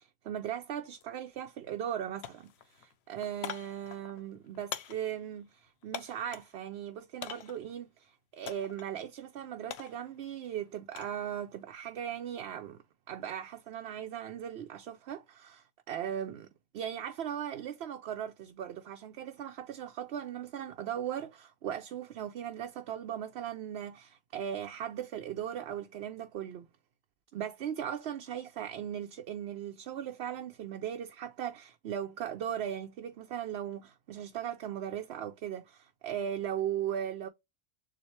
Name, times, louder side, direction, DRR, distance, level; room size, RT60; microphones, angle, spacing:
voice 1, 0.0-12.8 13.1-16.5 16.7-26.7 27.3-37.3, right 9 dB, 75° right, 0.8 m, -38 dB
sound 1, 1.0-1.1 1.5-2.0 2.2-6.6 7.2-7.7 8.5-8.9 9.2-11.2 11.5-12.0, left 10 dB, 80° left, 0.9 m, -44 dB
7.1 x 2.4 x 3.1 m
omnidirectional pair, 1.1 m